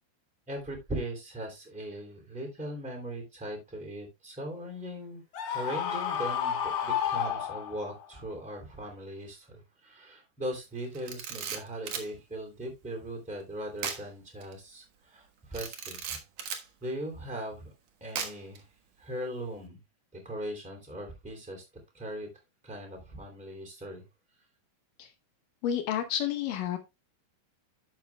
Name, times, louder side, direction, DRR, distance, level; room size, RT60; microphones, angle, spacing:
voice 1, 0.5-5.2 5.5-16.2 16.8-17.7 18.0-18.7 19.0-19.8 20.1-21.6 21.9-22.3 22.6-24.0, right 1 dB, 5° right, 1.6 m, -39 dB
Screaming, 5.3-8.0, left 8 dB, 65° left, 1.5 m, -31 dB
Camera, 10.9-12.1 13.8-14.0 14.4-14.5 15.5-16.7 18.1-18.6, right 7 dB, 75° right, 1.5 m, -36 dB
voice 2, 25.6-26.8, left 10 dB, 85° left, 1.9 m, -30 dB
12.0 x 7.5 x 2.3 m
omnidirectional pair, 5.2 m